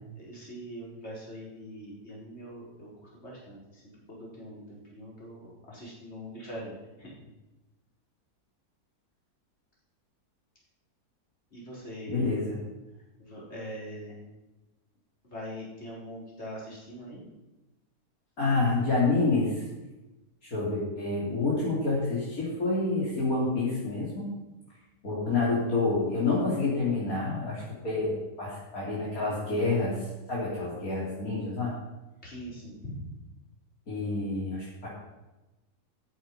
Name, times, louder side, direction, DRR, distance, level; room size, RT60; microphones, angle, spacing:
voice 1, 0.2-3.8 4.1-7.1 11.5-12.3 13.2-14.3 15.2-17.2 32.2-33.1, equal, 40° left, -4 dB, 4.5 m, -42 dB
voice 2, 12.1-12.6 18.4-19.6 20.4-24.3 25.0-30.0 30.3-31.7 33.9-34.9, left 3 dB, 60° left, -7 dB, 3.6 m, -28 dB
13.5 x 9.0 x 5.5 m, 1.0 s
omnidirectional pair, 1.7 m